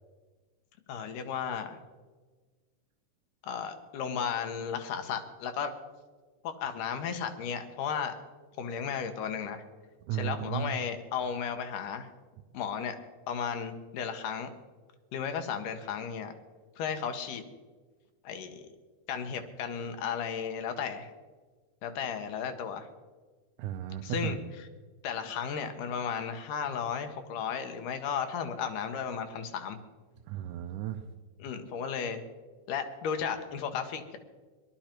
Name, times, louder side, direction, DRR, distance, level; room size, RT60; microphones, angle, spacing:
voice 1, 0.9-1.8 3.4-5.7 6.4-8.2 8.6-9.6 10.1-12.1 12.5-13.0 13.3-14.5 15.1-16.3 16.8-17.4 18.2-18.7 19.1-21.1 21.8-22.9 24.0-24.7 25.0-29.8 31.4-32.2 32.7-34.2, left 7 dB, 85° left, 7 dB, 2.6 m, -34 dB
voice 2, 10.0-10.7 23.6-24.3 30.3-31.0, right 10 dB, 85° right, 4 dB, 2.2 m, -34 dB
19.5 x 12.0 x 4.5 m, 1.4 s
omnidirectional pair, 3.6 m